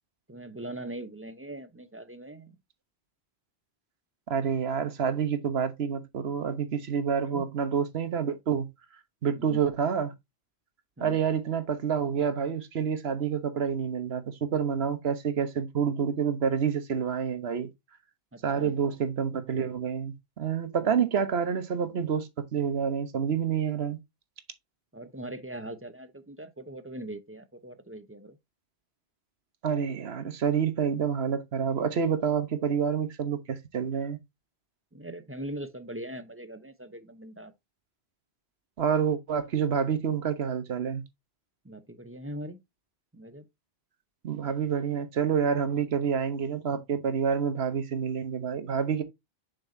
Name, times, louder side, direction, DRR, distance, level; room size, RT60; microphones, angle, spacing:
voice 1, 0.3-2.6 7.2-7.5 9.4-9.6 11.0-11.2 18.3-18.7 20.9-21.0 24.9-28.4 34.9-37.5 41.6-42.6 43.1-43.5 45.8-45.9, right 1 dB, 15° right, 0.6 m, -41 dB
voice 2, 4.3-8.7 9.2-10.1 11.0-17.7 18.4-24.0 29.6-34.2 38.8-41.0 44.2-49.0, right 7 dB, 75° right, 1.2 m, -28 dB
7.1 x 5.4 x 2.6 m
omnidirectional pair, 1.1 m